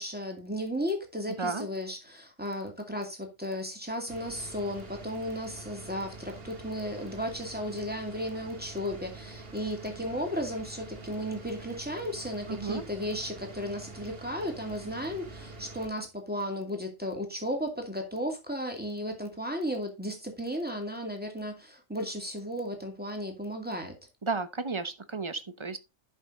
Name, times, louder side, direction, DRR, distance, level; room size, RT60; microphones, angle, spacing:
voice 1, 0.0-24.0, equal, 10° right, 2.4 m, -34 dB
sound 1, 4.1-15.9, right 3 dB, 55° right, 1.7 m, -46 dB
voice 2, 12.5-12.8 24.2-25.8, right 4 dB, 25° right, 0.9 m, -33 dB
11.0 x 5.7 x 3.9 m
omnidirectional pair, 1.2 m